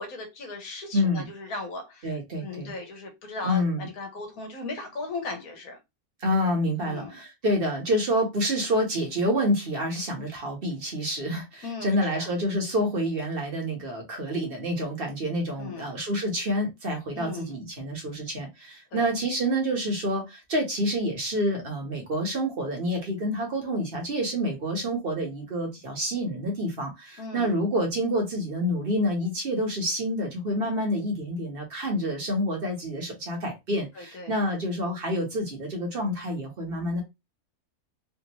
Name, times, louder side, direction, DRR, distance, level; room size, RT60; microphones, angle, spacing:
voice 1, 0.0-5.8 6.8-7.1 11.6-12.3 15.6-15.9 17.1-17.5 18.9-19.1 27.2-27.5 33.9-34.4, left 3 dB, 70° left, 1.4 m, -37 dB
voice 2, 0.9-1.3 2.0-2.7 3.4-3.9 6.2-37.0, equal, 40° right, 1.3 m, -28 dB
3.4 x 2.6 x 2.9 m
omnidirectional pair, 1.6 m